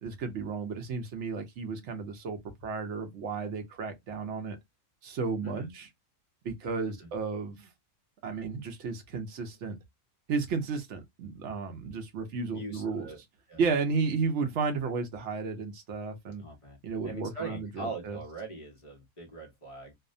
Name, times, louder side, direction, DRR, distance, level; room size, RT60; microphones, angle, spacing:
voice 1, 0.0-4.6 5.0-5.9 6.4-7.7 8.2-9.8 10.3-13.1 13.6-16.4 16.8-18.2, right 4 dB, 60° right, 0.8 m, -33 dB
voice 2, 12.5-13.2 13.5-13.6 16.4-16.8 17.0-19.9, right 2 dB, 40° left, 0.5 m, -41 dB
2.7 x 2.1 x 2.5 m
omnidirectional pair, 1.7 m